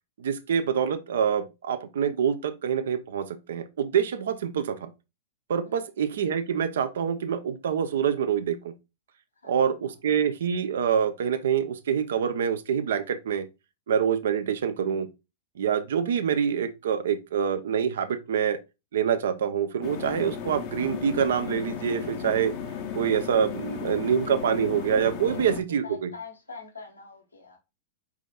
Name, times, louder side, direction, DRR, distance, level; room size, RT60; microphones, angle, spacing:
voice 1, 0.2-4.9 5.5-8.7 9.5-13.5 13.9-15.1 15.6-18.6 18.9-22.5 22.9-26.1, right 8 dB, 65° right, 0.6 m, -26 dB
sound 1, 19.8-25.6, left 7 dB, 45° left, 0.7 m, -35 dB
voice 2, 23.7-24.0 25.2-25.6 25.8-27.6, left 4 dB, 85° left, 1.3 m, -44 dB
4.9 x 4.2 x 2.4 m
figure-of-eight pair, 100°, 0 cm